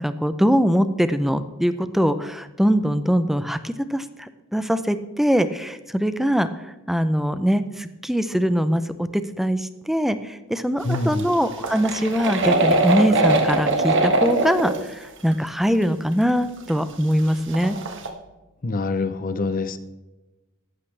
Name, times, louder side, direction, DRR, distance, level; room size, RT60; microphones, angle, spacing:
voice 1, 0.0-17.8, equal, ahead, 11 dB, 0.5 m, -22 dB
voice 2, 10.8-11.3 18.6-19.8, left 3 dB, 40° left, 11 dB, 0.7 m, -25 dB
sound 1, 10.9-14.8 15.3-15.4 15.8-15.9 16.7-16.8 17.0-18.1, right 2 dB, 60° right, 1.5 m, -21 dB
15.0 x 11.5 x 3.3 m, 1.1 s
head